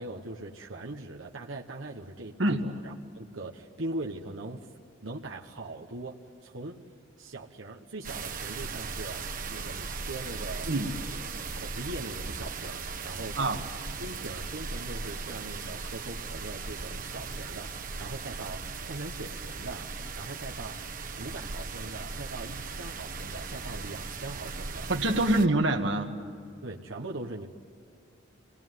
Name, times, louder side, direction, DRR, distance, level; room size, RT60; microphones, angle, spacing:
voice 1, 0.0-4.7 5.0-6.8 7.2-9.2 9.5-10.7 11.0-11.2 11.5-13.6 14.0-20.8 21.2-24.9 26.6-27.5, right 2 dB, 85° right, -1 dB, 1.4 m, -41 dB
sound 1, 8.0-25.5, right 4 dB, 45° right, 1.2 m, -38 dB
voice 2, 24.9-26.1, right 1 dB, 65° right, 5 dB, 1.8 m, -25 dB
26.5 x 19.5 x 9.5 m, 2.4 s
head